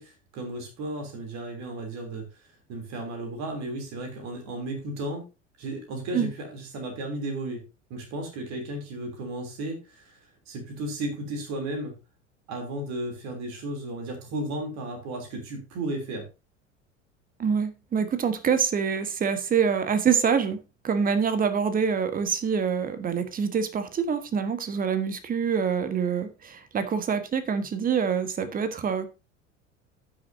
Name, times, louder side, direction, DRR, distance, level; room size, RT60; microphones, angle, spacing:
voice 1, 0.0-2.2 2.7-5.3 5.6-7.6 7.9-10.2 10.5-11.9 12.5-16.2, right 1 dB, 45° right, 3.1 m, -34 dB
voice 2, 17.4-20.6 20.8-29.1, right 6 dB, 25° right, 1.2 m, -25 dB
15.0 x 6.2 x 2.7 m
figure-of-eight pair, 70°, 37 cm